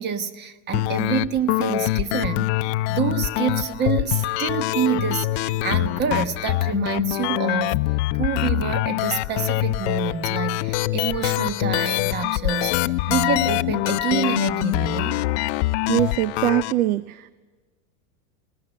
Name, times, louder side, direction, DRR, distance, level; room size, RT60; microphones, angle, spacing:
voice 1, 0.0-7.8 8.1-15.2, right 7 dB, 25° right, 11 dB, 1.2 m, -27 dB
sound 1, 0.7-16.7, left 18 dB, 50° left, 0.7 m, -24 dB
voice 2, 15.9-17.3, right 14 dB, 80° right, 15 dB, 0.8 m, -22 dB
20.5 x 19.5 x 9.9 m, 1.3 s
supercardioid pair, 155°, 42 cm